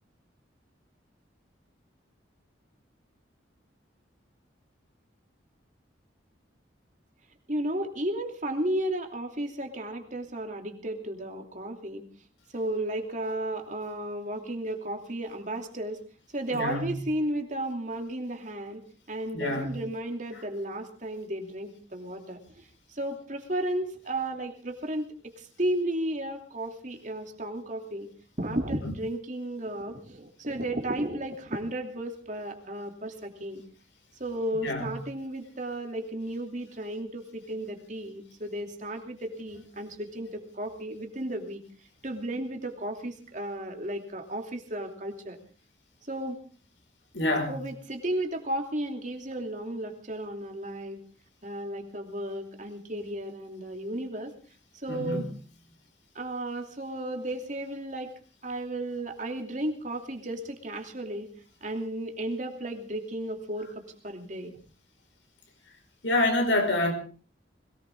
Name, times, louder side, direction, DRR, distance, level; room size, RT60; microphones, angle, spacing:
voice 1, 7.5-12.0 12.5-16.0 16.3-18.8 19.1-25.1 25.4-28.1 28.4-33.6 34.2-41.6 42.0-45.4 46.1-46.4 47.5-51.0 51.4-54.3 54.7-55.2 56.1-58.1 58.4-61.3 61.6-64.6, right 1 dB, 40° right, 4 dB, 2.7 m, -34 dB
voice 2, 16.5-17.0 19.3-19.8 20.3-20.4 28.8-28.9 34.6-35.0 47.1-47.6 54.9-55.3 66.0-66.9, left 1 dB, 80° left, 4 dB, 5.1 m, -27 dB
21.5 x 18.5 x 3.6 m, 0.39 s
head